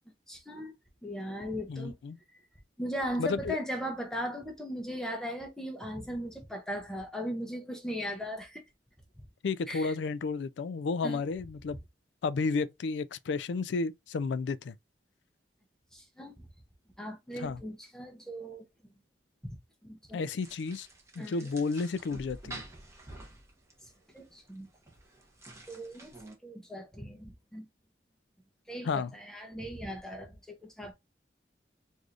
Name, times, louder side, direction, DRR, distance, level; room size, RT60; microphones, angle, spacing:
voice 1, 0.3-0.7 1.0-2.0 2.8-8.6 9.7-9.9 11.0-11.2 15.9-16.3 17.0-18.6 19.4-19.6 19.8-20.2 21.2-21.5 24.1-24.7 25.7-26.1 26.4-27.7 28.7-30.9, equal, 5° left, 0.7 m, -38 dB
voice 2, 1.7-2.2 3.2-3.6 9.4-11.8 12.2-14.8 17.3-17.6 20.1-20.9 21.2-22.6 28.8-29.1, left 4 dB, 85° left, 0.4 m, -32 dB
sound 1, 20.4-26.4, right 2 dB, 15° right, 1.2 m, -49 dB
4.7 x 2.6 x 2.4 m
head